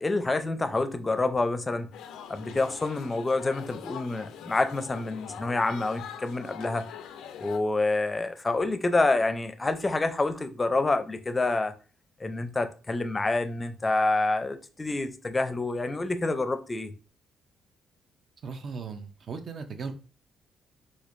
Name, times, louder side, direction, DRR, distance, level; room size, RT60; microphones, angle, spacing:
voice 1, 0.0-1.9 2.3-6.8 7.4-11.7 12.2-16.9, left 2 dB, 25° left, 0.5 m, -27 dB
sound 1, 1.9-7.6, left 8 dB, 85° left, 0.3 m, -43 dB
voice 2, 18.4-19.9, right 5 dB, 50° right, 0.6 m, -37 dB
4.3 x 2.5 x 2.5 m
cardioid pair, 90°, 0 cm